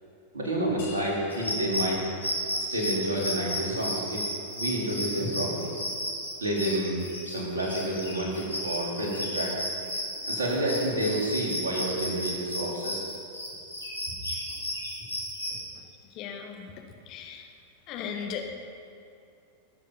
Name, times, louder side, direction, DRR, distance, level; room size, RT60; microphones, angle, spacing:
voice 1, 0.3-2.1 2.6-4.2 4.6-5.7 6.4-7.0 7.3-9.5 10.2-13.0, right 1 dB, 70° right, -3 dB, 3.7 m, -29 dB
sound 1, 0.8-6.1, left 3 dB, 60° left, 3.0 m, -48 dB
sound 2, 1.3-15.6, equal, 85° left, 2.6 m, -34 dB
voice 2, 16.1-16.7 17.1-17.5 17.9-18.5, left 7 dB, 40° left, 3 dB, 1.6 m, -36 dB
19.5 x 8.3 x 5.7 m, 2.6 s
figure-of-eight pair, 90°, 0 cm